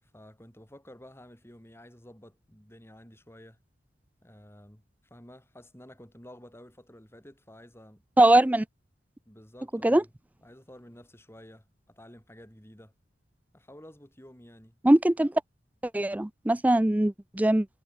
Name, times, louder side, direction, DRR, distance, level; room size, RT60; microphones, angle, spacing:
voice 1, 0.0-3.6 4.2-8.0 9.3-10.1 10.4-12.9 13.5-14.8, left 1 dB, 15° left, 6.1 m, -51 dB
voice 2, 8.2-8.6 9.8-10.0 14.8-15.3 15.9-17.7, right 1 dB, 10° right, 0.4 m, -21 dB
head